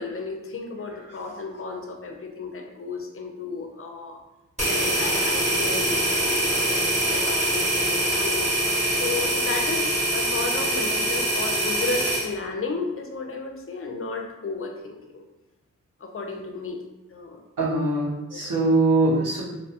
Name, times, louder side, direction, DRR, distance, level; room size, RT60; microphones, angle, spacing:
voice 1, 0.0-4.2 4.6-8.4 8.9-15.2 16.0-16.8 17.1-17.4 18.3-18.5, left 3 dB, 45° left, 3 dB, 0.5 m, -33 dB
sound 1, 4.6-12.3, right 1 dB, 20° right, 1.3 m, -24 dB
voice 2, 17.6-19.4, right 2 dB, 85° right, -5 dB, 1.0 m, -22 dB
2.5 x 2.2 x 2.7 m, 1.0 s
cardioid pair, 65°, 31 cm